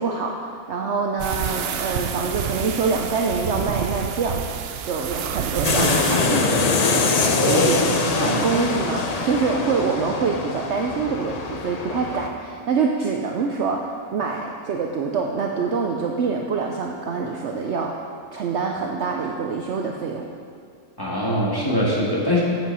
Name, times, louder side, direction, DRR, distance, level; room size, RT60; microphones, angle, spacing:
voice 1, 0.0-4.4 4.8-17.9 18.3-20.3, right 5 dB, 60° right, 1 dB, 0.8 m, -25 dB
sound 1, 1.2-6.2, right 8 dB, 85° right, 0.5 m, -28 dB
sound 2, 5.6-12.3, left 3 dB, 75° left, 0.3 m, -23 dB
voice 2, 7.3-7.8 8.1-8.4 21.0-22.4, left 1 dB, 15° left, -5 dB, 1.8 m, -22 dB
8.7 x 7.6 x 5.5 m, 2.3 s
omnidirectional pair, 1.6 m